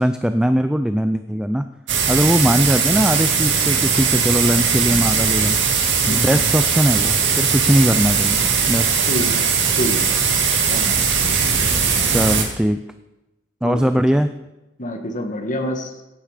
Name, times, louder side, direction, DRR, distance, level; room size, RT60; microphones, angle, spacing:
voice 1, 0.0-1.6 2.1-5.6 6.1-9.1 12.1-12.8 13.6-14.3, equal, 5° right, 9 dB, 0.4 m, -20 dB
sound 1, 1.9-12.4, right 6 dB, 70° right, 2.3 m, -19 dB
voice 2, 6.0-6.4 9.1-9.4 9.7-10.2 10.7-11.0 13.6-14.2 14.8-15.9, equal, 45° left, 4 dB, 1.7 m, -27 dB
16.5 x 9.3 x 5.0 m, 0.99 s
head